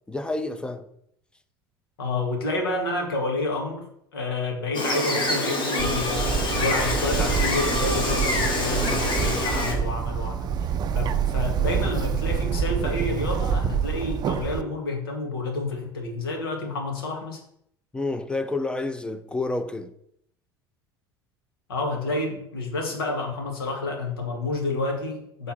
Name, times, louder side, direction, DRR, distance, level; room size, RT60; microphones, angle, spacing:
voice 1, 0.1-0.9 17.9-19.9, left 2 dB, 5° left, 0.7 m, -29 dB
voice 2, 2.0-3.8 4.1-17.4 21.7-25.5, left 2 dB, 70° left, 1.8 m, -29 dB
Gull seagull, 4.7-9.7, left 2 dB, 40° left, 1.9 m, -26 dB
Bird, 5.8-14.6, right 7 dB, 35° right, 0.5 m, -27 dB
5.8 x 3.9 x 6.1 m
figure-of-eight pair, 70°, 13 cm